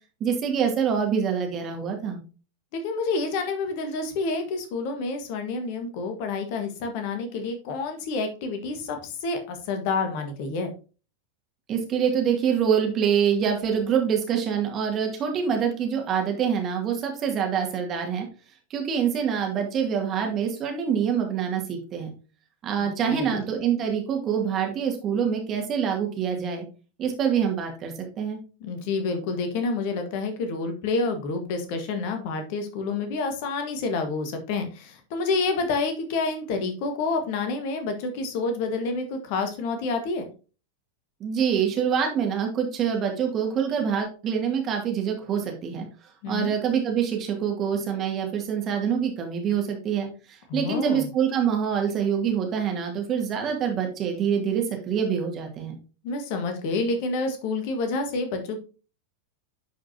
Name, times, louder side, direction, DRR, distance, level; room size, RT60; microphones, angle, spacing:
voice 1, 0.2-2.2 11.7-18.3 18.7-22.1 22.6-26.7 27.0-28.4 41.2-45.8 46.3-55.7, right 7 dB, 30° right, 2 dB, 2.2 m, -25 dB
voice 2, 2.7-10.7 22.8-23.5 28.6-40.2 46.2-46.5 50.5-51.1 56.0-58.6, left 3 dB, 45° left, 6 dB, 1.5 m, -28 dB
11.0 x 5.0 x 2.8 m, 0.34 s
figure-of-eight pair, 90°, 0 cm